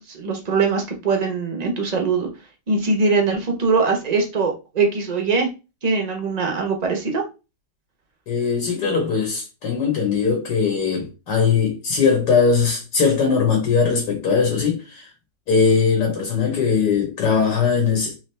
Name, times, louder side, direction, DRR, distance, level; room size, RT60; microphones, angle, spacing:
voice 1, 0.1-2.3 2.7-5.5 5.8-7.2, right 4 dB, 80° right, 0.3 m, -21 dB
voice 2, 8.3-15.1 15.5-18.2, left 5 dB, 80° left, 1.7 m, -20 dB
3.5 x 3.2 x 3.2 m
omnidirectional pair, 1.8 m